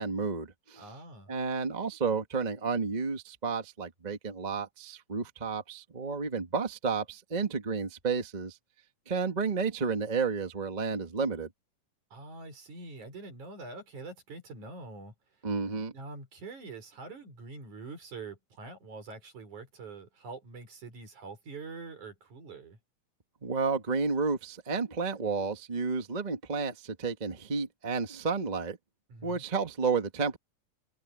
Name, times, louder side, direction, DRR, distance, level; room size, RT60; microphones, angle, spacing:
voice 1, 0.0-0.8 1.3-8.6 9.1-11.5 15.4-15.9 23.4-28.8 29.2-30.4, right 5 dB, 30° right, 0.7 m, -31 dB
voice 2, 0.8-1.3 12.1-15.1 15.9-22.8 29.1-29.4, right 3 dB, 65° right, 6.8 m, -45 dB
omnidirectional pair, 3.7 m